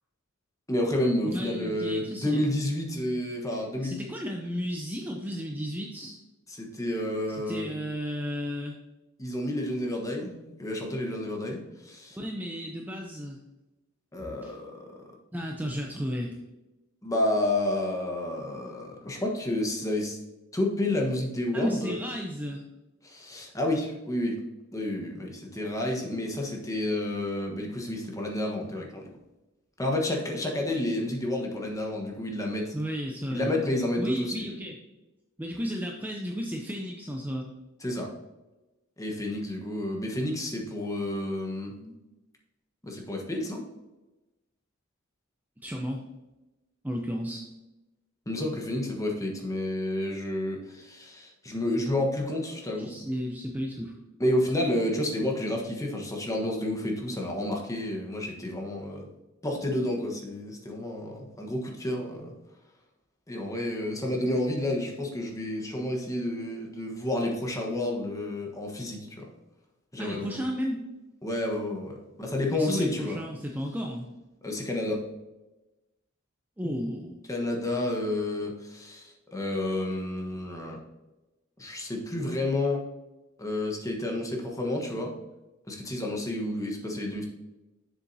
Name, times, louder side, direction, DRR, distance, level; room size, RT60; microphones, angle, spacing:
voice 1, 0.7-4.0 6.5-7.7 9.2-12.2 14.1-15.0 17.0-20.2 20.5-21.9 23.0-24.4 24.7-29.1 29.8-32.7 33.3-34.5 37.8-38.1 39.0-41.7 42.8-43.6 48.3-53.0 54.2-59.1 59.4-62.3 63.3-69.3 69.9-70.3 71.2-73.2 74.4-75.0 77.3-80.8 81.6-82.8 83.4-85.1 85.7-87.2, left 1 dB, 15° left, 0 dB, 1.2 m, -30 dB
voice 2, 1.2-2.5 3.8-6.2 7.3-8.7 12.1-13.4 14.4-14.6 15.3-16.3 21.5-22.6 32.7-33.5 34.0-34.7 35.4-37.5 41.8-41.9 45.6-46.1 46.8-47.5 52.8-53.9 70.0-70.8 72.5-74.1 76.6-77.2, equal, 10° right, 0 dB, 0.6 m, -33 dB
7.3 x 6.9 x 2.7 m, 1.0 s
head